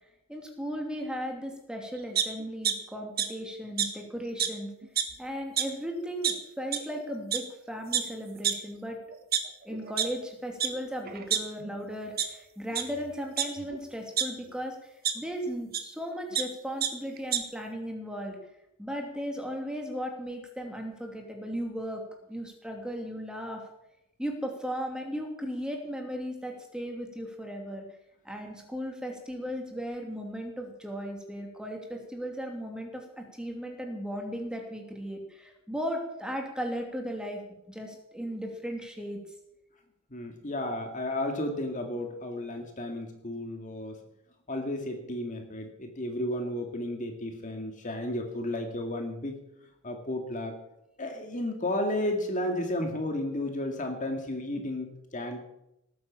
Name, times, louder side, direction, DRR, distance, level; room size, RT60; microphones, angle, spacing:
voice 1, 0.3-4.7 5.2-9.0 9.6-14.8 15.1-18.4 18.8-22.0 22.3-23.6 24.2-27.8 28.2-37.4 37.7-39.2, equal, 5° right, 2 dB, 2.8 m, -36 dB
sound 1, 2.1-2.7 3.2-3.3 3.8-3.9 4.4-4.5 4.8-5.1 5.6-5.7 6.2-6.3 6.7-6.8 7.3-7.4 7.9-8.0 8.4-8.5 9.1-10.1 10.6-10.7 11.1-11.8 12.2-12.3 12.7-12.8 13.4-14.3 15.0-15.1 15.7-15.8 16.1-16.4 16.8-16.9 17.2-17.4, right 9 dB, 45° right, 1.7 m, -27 dB
voice 2, 40.1-44.0 44.5-49.4 49.8-50.6 51.0-55.4, left 1 dB, 35° left, 4 dB, 2.1 m, -33 dB
19.0 x 9.5 x 7.3 m, 0.84 s
head